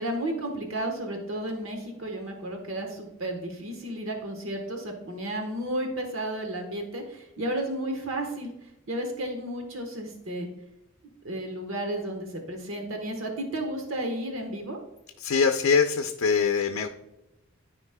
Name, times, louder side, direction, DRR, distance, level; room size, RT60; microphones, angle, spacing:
voice 1, 0.0-8.5 8.9-10.5 11.2-14.8, right 1 dB, 70° right, 3 dB, 1.2 m, -32 dB
voice 2, 15.2-16.9, left 5 dB, 85° left, 6 dB, 0.5 m, -23 dB
13.0 x 5.0 x 2.2 m, 0.93 s
head